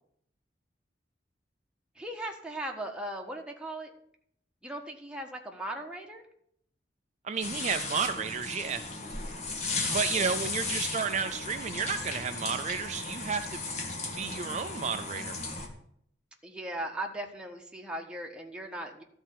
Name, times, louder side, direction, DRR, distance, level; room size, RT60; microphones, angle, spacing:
voice 1, 2.0-3.9 4.6-6.2 9.7-10.4 16.4-19.0, right 1 dB, 5° right, 1 dB, 1.4 m, -38 dB
voice 2, 7.2-8.8 9.9-13.6 14.2-15.3, right 6 dB, 40° right, 7 dB, 0.5 m, -32 dB
sound 1, 7.4-15.7, left 3 dB, 40° left, 1.8 m, -35 dB
13.0 x 4.3 x 8.4 m, 0.68 s
head